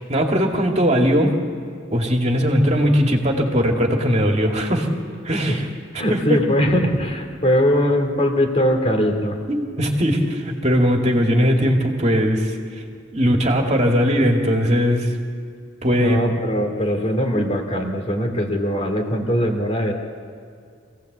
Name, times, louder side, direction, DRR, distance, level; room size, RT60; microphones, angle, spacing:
voice 1, 0.1-1.4 1.9-4.9 5.2-5.7 6.1-6.4 9.5-12.6 13.1-15.1 15.8-16.2, equal, 35° right, 1 dB, 2.4 m, -19 dB
voice 2, 5.9-9.4 15.9-19.9, equal, 35° left, 4 dB, 2.5 m, -21 dB
25.0 x 17.0 x 8.1 m, 2.3 s
head